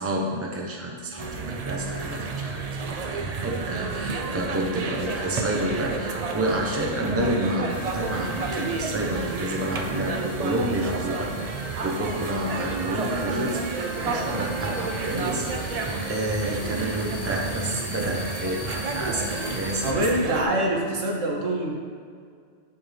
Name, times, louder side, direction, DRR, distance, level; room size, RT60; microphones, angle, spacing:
voice 1, 0.0-2.5 2.8-11.3 11.8-20.0, right 1 dB, 15° right, -1 dB, 0.8 m, -29 dB
sound 1, 1.2-20.4, right 4 dB, 50° right, 0.4 m, -31 dB
voice 2, 4.2-4.5 19.8-21.7, right 1 dB, 90° right, -1 dB, 1.5 m, -25 dB
sound 2, 7.7-19.9, left 5 dB, 80° left, 1.1 m, -43 dB
11.0 x 4.3 x 3.4 m, 2.1 s
omnidirectional pair, 1.3 m